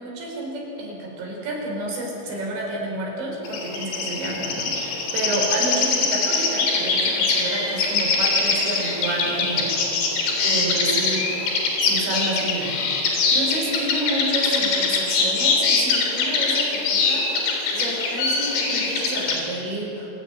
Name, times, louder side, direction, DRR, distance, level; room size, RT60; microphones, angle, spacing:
voice 1, 0.0-9.8 10.4-11.3 11.8-12.8 13.3-17.3 17.7-20.1, right 1 dB, 65° right, -1 dB, 7.2 m, -29 dB
sound 1, 3.5-19.4, left 4 dB, 75° left, 6.3 m, -23 dB
27.5 x 17.5 x 9.3 m, 3.0 s
omnidirectional pair, 5.7 m